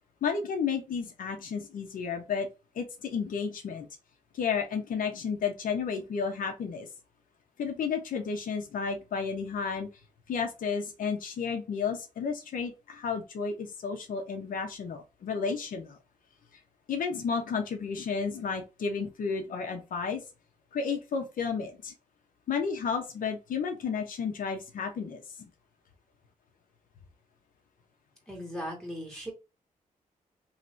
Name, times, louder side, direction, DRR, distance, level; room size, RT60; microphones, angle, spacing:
voice 1, 0.2-2.5 2.7-3.9 4.3-6.9 7.6-9.9 10.3-16.0 16.9-20.2 20.7-21.9 22.5-25.2, left 5 dB, 85° left, 4 dB, 1.0 m, -32 dB
voice 2, 28.3-29.3, equal, 5° left, -1 dB, 2.1 m, -38 dB
3.2 x 3.0 x 3.9 m, 0.28 s
cardioid pair, 105°, 14 cm